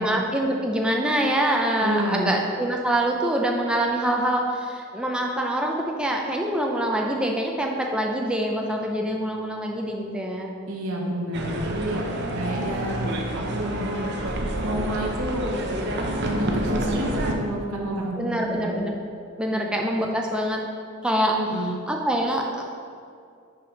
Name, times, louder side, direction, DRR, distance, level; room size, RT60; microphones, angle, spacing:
voice 1, 0.0-10.5 18.2-19.0 19.4-20.6 21.0-21.4 21.9-22.6, right 1 dB, 5° right, 0 dB, 0.5 m, -25 dB
voice 2, 1.8-2.3 10.7-14.1 14.6-15.6 16.2-18.7 19.5-19.7 21.4-21.7, equal, 75° right, -1 dB, 1.1 m, -29 dB
sound 1, 11.3-17.4, right 1 dB, 50° right, 0.7 m, -28 dB
5.8 x 5.0 x 5.3 m, 2.3 s
head